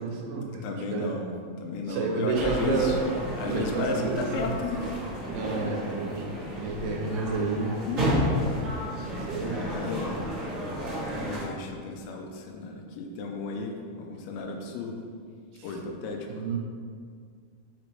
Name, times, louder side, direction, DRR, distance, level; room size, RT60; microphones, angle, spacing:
voice 1, 0.0-1.1 1.8-3.1 3.5-4.5 5.3-6.3 6.6-7.8 9.2-9.7 15.5-15.8 16.3-16.6, right 4 dB, 75° right, 0 dB, 2.3 m, -30 dB
voice 2, 0.6-3.0 3.4-5.0 5.5-5.7 7.3-7.4 7.8-8.6 8.9-9.3 9.6-10.2 11.2-15.0 15.6-16.3, left 3 dB, 90° left, 2 dB, 2.5 m, -34 dB
sound 1, 2.3-11.4, equal, 55° right, 0.8 m, -32 dB
6.1 x 4.1 x 4.6 m, 2.1 s
omnidirectional pair, 4.4 m